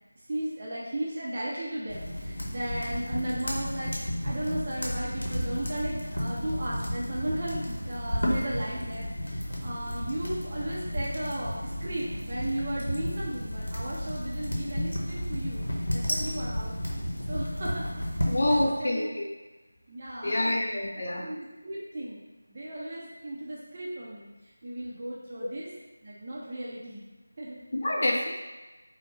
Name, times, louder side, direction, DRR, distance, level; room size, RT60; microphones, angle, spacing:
voice 1, 0.3-16.8 17.3-19.2 19.9-20.5 21.2-24.3 24.6-25.7 26.0-27.0 27.4-27.6, right 1 dB, 35° right, -7 dB, 0.5 m, -36 dB
sound 1, 1.9-18.7, equal, 80° left, 0.8 m, -32 dB
voice 2, 18.2-19.2 20.2-21.3 25.4-25.5 27.7-28.3, left 1 dB, 45° left, -2 dB, 0.4 m, -27 dB
3.1 x 2.0 x 3.0 m, 1.2 s
figure-of-eight pair, 170°, 0 cm